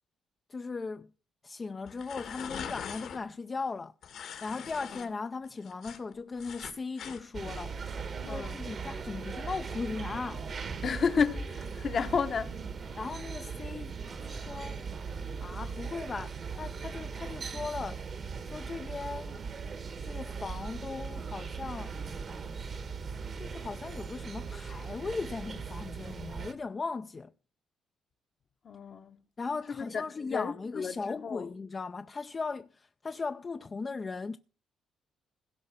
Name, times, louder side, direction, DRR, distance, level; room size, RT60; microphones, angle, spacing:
voice 1, 0.5-1.1 1.4-10.5 13.0-14.0 14.2-14.8 15.4-18.0 18.4-19.4 20.0-21.9 23.4-27.3 29.4-34.4, left 4 dB, 35° left, 0.5 m, -38 dB
sound 1, 1.8-3.2 4.0-5.1 5.4-7.2, left 7 dB, 75° left, 2.2 m, -42 dB
sound 2, 7.3-26.5, right 5 dB, 45° right, 1.1 m, -39 dB
voice 2, 8.2-8.6 10.8-12.5 28.6-29.2 29.7-31.5, left 6 dB, 50° left, 1.1 m, -32 dB
16.5 x 5.6 x 7.3 m
cardioid pair, 90°, 0 cm